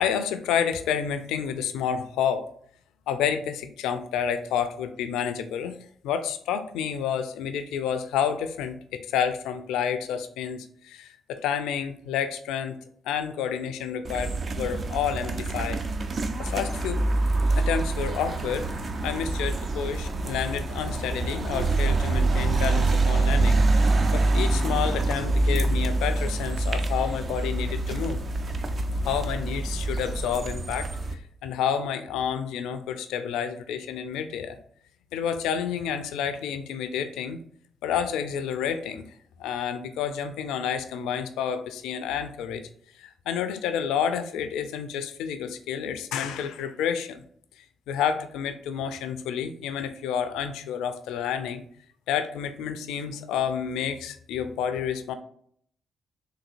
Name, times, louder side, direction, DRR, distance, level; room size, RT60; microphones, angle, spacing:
voice 1, 0.0-2.5 3.1-5.7 6.0-15.8 16.4-17.0 17.6-18.7 19.0-28.2 29.0-34.6 35.1-37.4 37.8-39.0 39.4-42.6 43.0-47.2 47.6-51.6 52.1-55.1, left 8 dB, 70° left, 10 dB, 0.3 m, -29 dB
sound 1, 14.0-31.1, right 2 dB, 45° right, 0.4 m, -25 dB
3.9 x 2.6 x 2.5 m, 0.63 s
hypercardioid pair, 45°, 0 cm